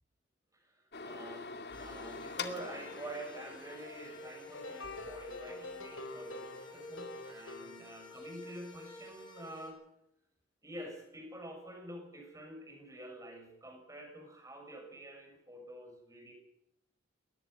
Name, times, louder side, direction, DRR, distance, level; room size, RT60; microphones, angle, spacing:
voice 1, 0.5-9.9 10.6-16.3, right 1 dB, 15° right, 4 dB, 6.5 m, -48 dB
sound 1, 0.9-7.6, left 4 dB, 55° left, 2.2 m, -47 dB
sound 2, 1.7-9.7, left 1 dB, 25° left, 6.6 m, -51 dB
sound 3, 4.5-8.3, left 2 dB, 90° left, 4.3 m, -47 dB
22.0 x 19.5 x 6.5 m, 0.82 s
head